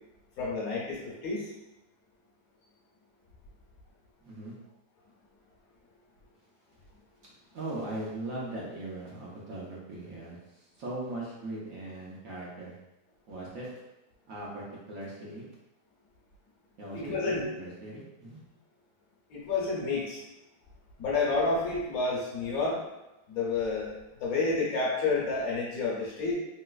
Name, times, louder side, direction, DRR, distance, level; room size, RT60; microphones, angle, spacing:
voice 1, 0.4-1.5 16.9-17.5 19.3-20.2 21.0-22.8 23.3-26.3, left 3 dB, 65° left, -5 dB, 1.1 m, -30 dB
voice 2, 4.2-4.5 7.5-12.7 13.3-13.7 14.3-15.4 16.8-17.2 17.5-18.4, right 2 dB, 60° right, -5 dB, 1.1 m, -39 dB
3.1 x 2.9 x 2.3 m, 0.98 s
omnidirectional pair, 1.8 m